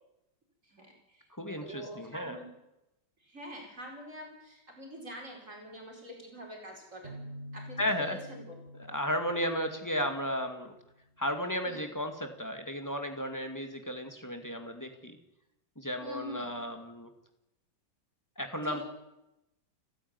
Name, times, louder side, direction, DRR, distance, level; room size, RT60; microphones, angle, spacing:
voice 1, 0.6-1.2 1.6-2.5 3.2-7.1 7.5-8.6 11.7-11.8 16.0-16.5 18.6-18.8, equal, 40° right, 0 dB, 5.2 m, -45 dB
voice 2, 1.3-2.4 7.8-8.2 8.9-10.7 11.2-15.2 15.8-17.1 18.4-18.8, equal, 10° left, 6 dB, 2.1 m, -34 dB
sound 1, 7.0-10.7, equal, 25° right, 3.4 m, -47 dB
30.0 x 10.0 x 9.6 m, 0.90 s
omnidirectional pair, 2.1 m